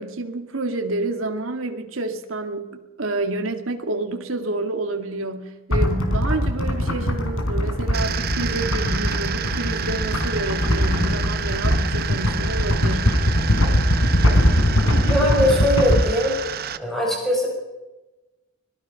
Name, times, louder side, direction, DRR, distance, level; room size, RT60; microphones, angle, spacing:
voice 1, 0.0-13.2, right 2 dB, 75° right, 5 dB, 2.1 m, -29 dB
sound 1, 5.7-16.0, equal, 85° left, 4.1 m, -21 dB
sound 2, 7.9-16.8, right 7 dB, 45° right, 0.8 m, -29 dB
voice 2, 15.1-16.3 16.8-17.5, equal, ahead, -2 dB, 6.6 m, -20 dB
25.0 x 19.0 x 5.7 m, 1.1 s
head